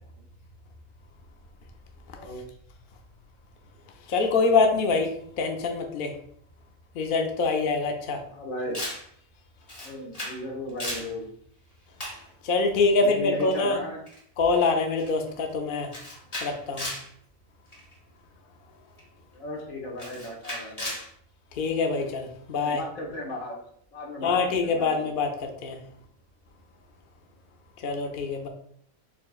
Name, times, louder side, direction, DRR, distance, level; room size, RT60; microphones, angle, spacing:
voice 1, 2.1-2.5 8.3-8.8 9.8-11.3 12.9-14.0 19.3-20.9 22.6-23.6 23.9-24.9, left 1 dB, 80° left, -2 dB, 1.6 m, -36 dB
voice 2, 4.1-6.1 6.9-8.2 12.4-13.8 14.4-15.9 16.4-16.9 21.5-22.8 24.2-25.8 27.8-28.5, left 4 dB, 55° left, 3 dB, 0.6 m, -25 dB
Camera, 8.7-9.1 9.7-10.4 10.7-11.1 12.0-12.2 13.4-13.6 14.1-14.2 14.5-14.7 15.0-15.3 15.9-17.1 17.7-17.9 19.0-19.1 20.0-21.1, left 1 dB, 30° left, 1.0 m, -36 dB
4.4 x 3.8 x 2.4 m, 0.65 s
omnidirectional pair, 1.4 m